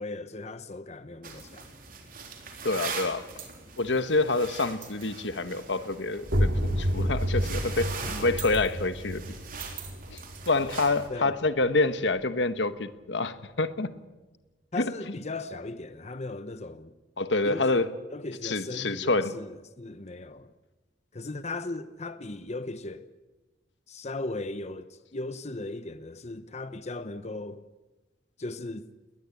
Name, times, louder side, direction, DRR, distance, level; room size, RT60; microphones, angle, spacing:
voice 1, 0.0-1.7 8.0-8.5 11.1-11.4 14.7-16.9 17.4-20.5 21.1-23.1 23.9-27.6 28.4-28.9, left 2 dB, 40° left, 0.9 m, -37 dB
sound 1, 1.2-11.1, right 5 dB, 50° right, 4.1 m, -41 dB
voice 2, 2.6-3.2 3.8-9.2 10.1-10.2 10.5-13.9 14.8-14.9 17.2-17.9 18.4-19.3, left 3 dB, 80° left, 1.3 m, -27 dB
sound 2, 6.3-11.8, equal, 70° right, 2.6 m, -30 dB
20.5 x 20.0 x 8.5 m
head